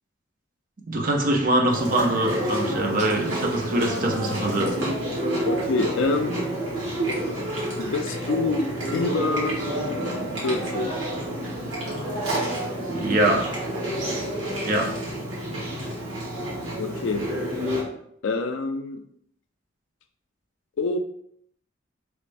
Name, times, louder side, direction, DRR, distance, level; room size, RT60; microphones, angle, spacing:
voice 1, 0.9-4.8 12.9-13.5 14.6-14.9, right 1 dB, 40° right, 1 dB, 0.5 m, -23 dB
Chewing mastication, 1.7-17.8, right 1 dB, 70° right, 1.4 m, -29 dB
voice 2, 5.5-6.4 7.6-9.6 10.4-11.0 16.8-17.2 18.2-19.0 20.8-21.0, left 3 dB, 70° left, 8 dB, 0.3 m, -26 dB
3.1 x 2.5 x 3.2 m, 0.70 s
head